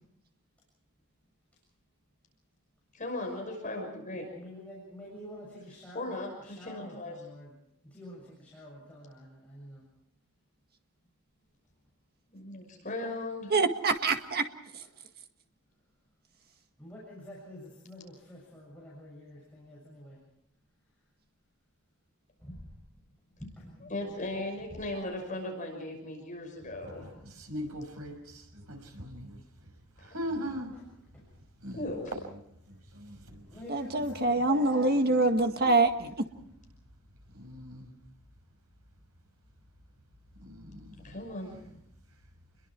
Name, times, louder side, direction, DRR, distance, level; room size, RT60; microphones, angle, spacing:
voice 1, 2.9-4.3 5.9-7.2 12.3-13.5 23.9-27.1 31.7-32.1 41.0-41.6, left 1 dB, 35° left, 2 dB, 6.0 m, -37 dB
voice 2, 4.1-7.5 7.8-9.8 16.8-20.2 22.4-22.7 23.4-24.2 26.9-27.1 31.1-31.2 33.3-35.8, left 1 dB, 5° left, -5 dB, 7.1 m, -48 dB
voice 3, 13.5-14.5 33.7-36.3, right 2 dB, 45° right, 6 dB, 1.8 m, -25 dB
voice 4, 26.6-30.9 31.3-33.6 37.3-37.9 40.4-41.2, equal, 80° right, 4 dB, 6.2 m, -41 dB
29.5 x 22.5 x 4.7 m, 0.75 s
head